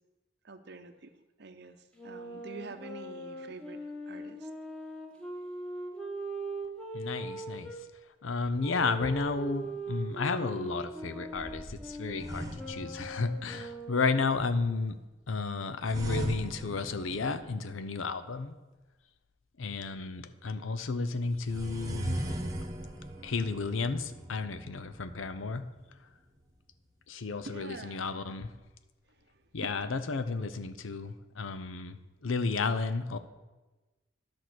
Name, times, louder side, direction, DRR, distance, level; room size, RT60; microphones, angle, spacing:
voice 1, 0.4-1.1 1.4-4.5 13.0-13.1 27.4-28.0 29.1-29.7, right 3 dB, 55° right, 9 dB, 0.7 m, -47 dB
Wind instrument woodwind instrument, 1.9-7.8 8.6-14.4, right 2 dB, 5° left, 1.2 m, -41 dB
voice 2, 6.9-7.7 8.2-15.0 15.3-18.6 19.6-22.2 23.2-25.7 27.1-28.5 29.5-33.2, left 4 dB, 85° left, 12 dB, 0.7 m, -32 dB
sound 1, 8.4-9.4 11.3-13.7 15.9-18.0 21.3-26.0, right 1 dB, 20° right, 1.1 m, -40 dB
10.5 x 6.2 x 6.0 m, 1.2 s
head